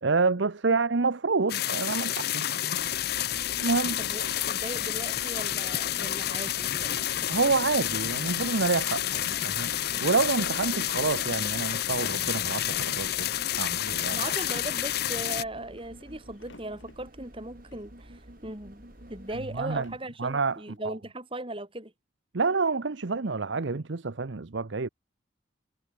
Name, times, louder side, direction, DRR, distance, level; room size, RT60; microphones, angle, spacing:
voice 1, 0.0-2.5 3.6-4.0 7.3-9.7 10.0-13.3 13.6-14.2 19.5-19.9 20.2-20.9 22.3-24.9, right 4 dB, 75° right, 0.8 m, -28 dB
sound 1, 1.5-15.4, left 12 dB, 55° left, 0.6 m, -29 dB
sound 2, 2.7-20.0 20.4-20.5, right 1 dB, 50° right, 3.9 m, -50 dB
voice 2, 4.0-7.0 14.1-18.8 19.1-21.9, right 1 dB, 30° right, 4.9 m, -38 dB
sound 3, 5.1-6.3 6.6-7.1 7.6-14.7 15.2-17.0 17.6-17.9 18.4-18.6 19.4-19.5 19.8-20.0, left 4 dB, 85° left, 4.0 m, -49 dB
head